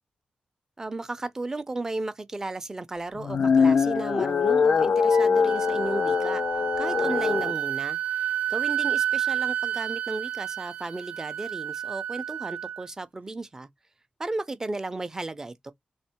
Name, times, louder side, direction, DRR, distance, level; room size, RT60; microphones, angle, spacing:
voice 1, 0.8-6.4 6.8-13.7 14.2-15.7, right 2 dB, 20° right, 0.6 m, -34 dB
sound 1, 3.1-7.5, left 5 dB, 55° left, 0.3 m, -23 dB
Wind instrument woodwind instrument, 5.1-12.9, right 11 dB, 70° right, 0.4 m, -30 dB
3.5 x 3.3 x 4.4 m
wide cardioid pair, 165°, 3 cm